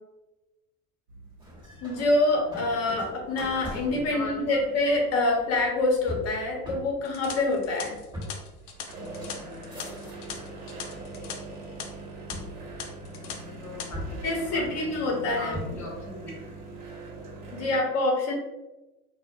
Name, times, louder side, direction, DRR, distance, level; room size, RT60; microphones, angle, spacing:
sound 1, 1.1-17.8, right 2 dB, 70° right, 0.8 m, -44 dB
sound 2, 1.4-10.6 10.9-11.6 12.3-13.4 13.9-16.0, equal, 10° right, 1.0 m, -41 dB
voice 1, 1.8-7.9 14.2-15.6 17.5-18.3, left 2 dB, 35° left, 0 dB, 0.8 m, -26 dB
voice 2, 4.1-4.6 13.4-15.0 15.4-16.3, left 2 dB, 5° left, -4 dB, 0.4 m, -40 dB
sound 3, 7.0-11.3 11.6-11.8 12.3-12.4 12.8-13.3 13.6-13.9, left 7 dB, 80° left, 0.6 m, -39 dB
2.1 x 2.0 x 2.9 m, 1.0 s
hypercardioid pair, 90°, 45 cm